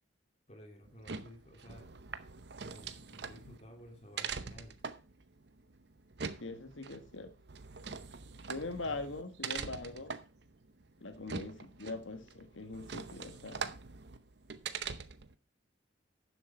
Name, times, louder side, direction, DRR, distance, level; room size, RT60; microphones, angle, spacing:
voice 1, 0.5-1.9 2.7-4.8 8.8-9.0 9.4-9.5 9.9-10.1 11.2-11.5, equal, 35° left, 2.6 m, -54 dB
sound 1, 0.9-15.3, right 5 dB, 60° right, 0.8 m, -43 dB
voice 2, 6.4-7.3 8.4-10.1 11.0-13.7, left 2 dB, 85° left, 1.5 m, -42 dB
11.5 x 7.0 x 4.3 m
head